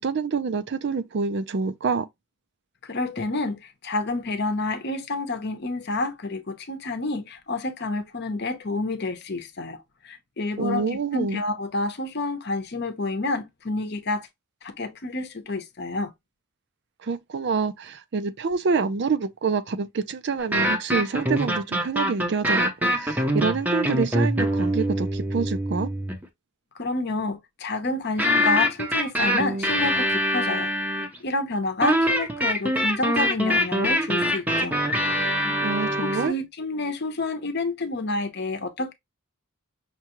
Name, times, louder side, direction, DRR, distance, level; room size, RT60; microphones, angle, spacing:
voice 1, 0.0-2.1 10.6-11.4 17.0-25.9 35.6-36.3, right 4 dB, 50° right, 0.4 m, -27 dB
voice 2, 2.8-9.8 10.0-14.3 14.6-16.1 26.7-34.7 35.4-35.6 36.0-38.9, left 2 dB, 50° left, 0.7 m, -29 dB
sound 1, 20.4-26.3 28.2-31.2 31.8-36.3, equal, 10° right, 0.6 m, -24 dB
5.8 x 2.3 x 2.9 m
head